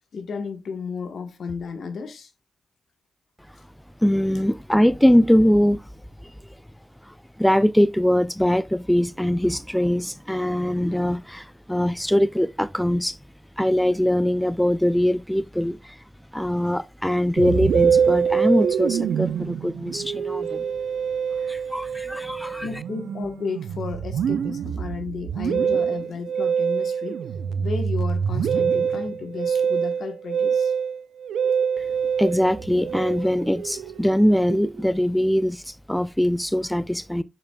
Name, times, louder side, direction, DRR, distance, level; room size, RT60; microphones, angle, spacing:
voice 1, 0.1-2.3 22.6-27.2 27.6-30.7, left 5 dB, 75° left, 1.1 m, -33 dB
voice 2, 4.0-5.9 6.2-6.3 7.0-13.2 13.6-16.0 16.3-20.7 21.5-22.7 31.8-31.9 32.2-37.2, equal, 5° left, 0.4 m, -22 dB
Musical instrument, 17.4-35.0, right 7 dB, 80° right, 0.5 m, -25 dB
7.7 x 7.1 x 2.2 m
supercardioid pair, 40°, 0 cm